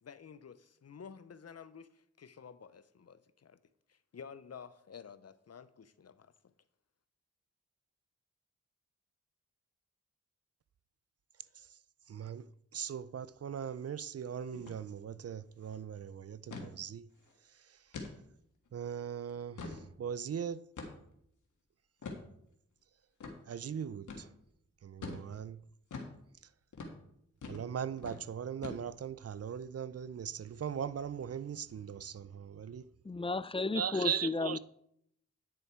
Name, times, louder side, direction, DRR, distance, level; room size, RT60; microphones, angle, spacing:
voice 1, 0.0-3.6 3.9-6.3, left 6 dB, 55° left, 0.7 m, -51 dB
voice 2, 12.1-12.4 12.7-17.0 18.7-19.6 20.0-20.7 23.5-24.3 24.8-25.6 27.5-32.8 33.7-34.6, right 8 dB, 55° right, 0.5 m, -39 dB
sound 1, 14.5-14.8 15.1-15.2 15.5-15.8 16.5-16.7 17.2-17.3 17.9-18.1 18.7-18.8 19.3-19.9 20.8-21.1 22.0-22.2 23.2-23.4 24.1-24.3 25.0-25.3 25.9-26.1 26.7-27.0 27.4-27.7 28.0-28.2 28.6-29.1, left 3 dB, 80° left, 1.6 m, -43 dB
voice 3, 33.0-34.6, left 3 dB, 20° left, 0.4 m, -33 dB
9.7 x 6.7 x 4.5 m
cardioid pair, 45°, 30 cm